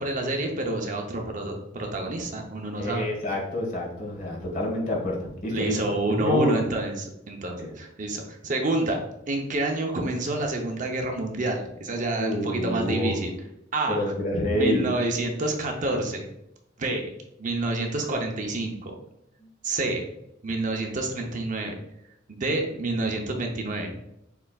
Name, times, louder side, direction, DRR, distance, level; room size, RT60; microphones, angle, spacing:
voice 1, 0.0-3.1 5.5-9.0 9.3-13.3 13.7-14.1 14.5-16.3 16.8-17.1 17.4-18.9 19.6-20.1 20.4-21.7 22.3-23.9, right 2 dB, 45° right, 2 dB, 0.7 m, -28 dB
voice 2, 2.8-5.9 6.2-6.6 7.6-7.7 12.2-13.2 13.9-14.9, left 1 dB, 45° left, -2 dB, 1.5 m, -27 dB
6.8 x 3.3 x 2.3 m, 0.82 s
head